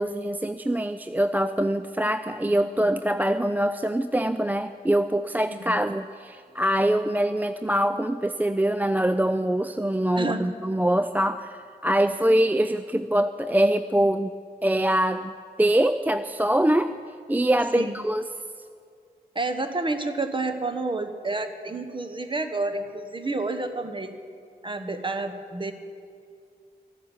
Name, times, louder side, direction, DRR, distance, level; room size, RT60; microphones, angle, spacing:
voice 1, 0.0-14.3 14.6-15.3 15.6-16.9 17.3-18.3, right 1 dB, 10° right, 10 dB, 0.4 m, -24 dB
voice 2, 5.4-5.7 10.1-10.6 17.7-18.0 19.3-24.2 24.6-25.7, right 2 dB, 30° right, 8 dB, 1.3 m, -30 dB
13.5 x 11.0 x 7.2 m, 2.2 s
cardioid pair, 65°, 17 cm